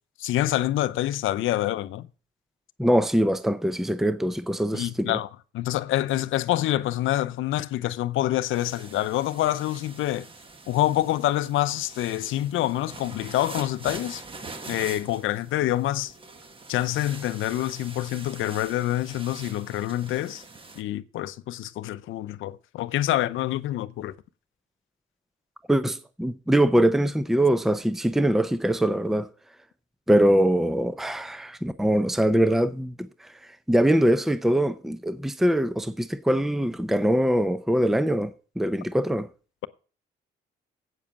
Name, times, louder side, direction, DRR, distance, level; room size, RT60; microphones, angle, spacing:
voice 1, 0.2-2.1 4.7-5.3 5.5-10.3 10.7-14.2 14.7-16.1 16.7-20.4 20.8-24.1, left 14 dB, 80° left, 0.7 m, -26 dB
voice 2, 2.8-5.2 25.7-29.3 30.1-33.0 33.2-33.3 33.7-38.3 38.6-39.3, right 1 dB, ahead, 0.6 m, -23 dB
sound 1, 8.5-20.8, right 3 dB, 25° right, 1.3 m, -44 dB
8.4 x 7.4 x 7.0 m
cardioid pair, 90°, 20 cm